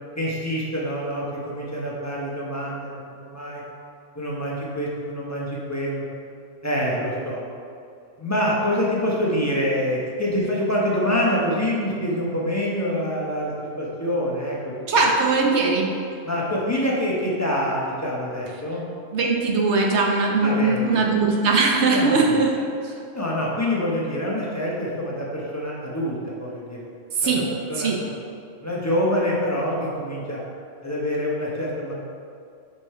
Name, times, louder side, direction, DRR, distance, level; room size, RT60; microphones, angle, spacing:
voice 1, 0.2-3.6 4.1-6.0 6.6-7.4 8.2-15.0 16.2-18.9 20.4-21.1 21.8-22.4 23.1-26.8 27.2-27.4 27.7-28.1 28.6-30.4 30.8-31.9, equal, 15° left, -5 dB, 0.9 m, -26 dB
voice 2, 14.9-16.0 19.1-22.6 22.8-22.9 27.2-27.4 27.8-28.0, right 3 dB, 60° right, 0 dB, 1.0 m, -20 dB
5.3 x 4.9 x 4.4 m, 2.4 s
omnidirectional pair, 1.4 m